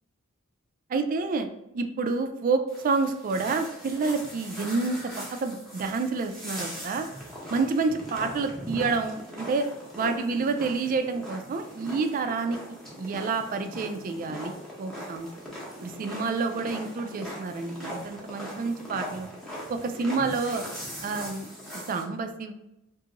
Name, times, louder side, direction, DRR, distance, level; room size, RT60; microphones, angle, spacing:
voice 1, 0.9-1.5 1.7-7.1 7.5-9.7 10.0-15.3 15.8-19.3 19.7-20.6 21.0-22.5, right 4 dB, 40° right, 7 dB, 0.3 m, -29 dB
sound 1, 2.7-22.0, equal, ahead, 0.8 m, -40 dB
2.9 x 2.6 x 2.4 m, 0.89 s
head